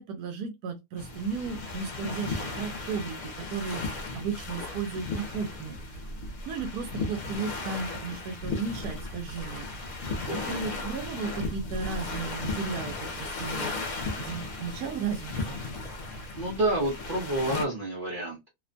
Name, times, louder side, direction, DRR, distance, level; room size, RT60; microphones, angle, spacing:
voice 1, 0.0-5.9 6.5-9.9 10.3-15.6, right 5 dB, 85° right, 1.1 m, -35 dB
sound 1, 1.0-17.6, left 3 dB, 65° left, 1.0 m, -36 dB
voice 2, 10.3-10.6 16.0-18.5, right 1 dB, 45° right, 0.7 m, -30 dB
2.9 x 2.1 x 2.5 m
omnidirectional pair, 1.6 m